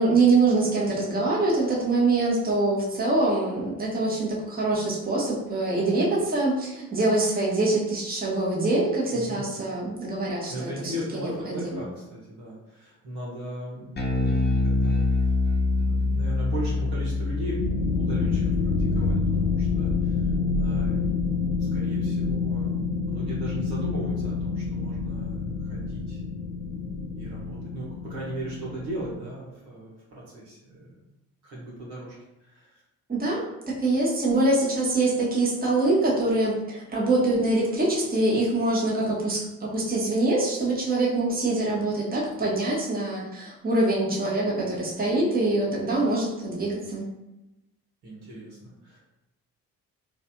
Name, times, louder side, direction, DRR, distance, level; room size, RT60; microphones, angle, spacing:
voice 1, 0.0-11.9 33.1-33.4 33.8-47.1, right 2 dB, 20° right, -5 dB, 1.2 m, -24 dB
voice 2, 9.1-9.5 10.5-21.3 21.7-26.2 27.1-30.9 31.4-32.1 32.4-32.8 46.0-46.1 48.0-49.0, right 1 dB, 65° right, -6 dB, 1.3 m, -38 dB
Bass guitar, 14.0-20.4, left 2 dB, 25° left, 0.8 m, -26 dB
sound 1, 17.6-29.2, left 4 dB, 50° left, 0.9 m, -27 dB
4.0 x 2.5 x 2.3 m, 0.97 s
figure-of-eight pair, 40°, 43 cm